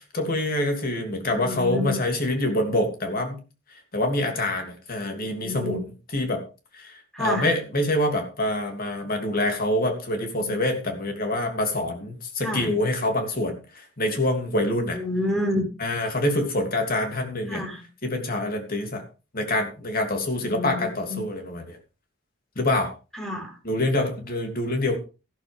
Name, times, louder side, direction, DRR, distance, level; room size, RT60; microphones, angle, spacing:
voice 1, 0.1-3.4 3.9-5.9 6.1-6.4 6.7-15.0 15.8-17.7 18.0-19.0 19.3-21.8 22.5-22.9 23.6-25.0, left 1 dB, 45° left, 4 dB, 3.0 m, -26 dB
voice 2, 1.3-2.0 5.1-5.8 7.1-7.5 10.4-10.6 12.4-12.7 14.9-15.6 17.5-17.8 20.4-21.2 23.2-23.5, left 1 dB, ahead, 1 dB, 4.6 m, -29 dB
14.0 x 12.5 x 3.6 m, 0.33 s
head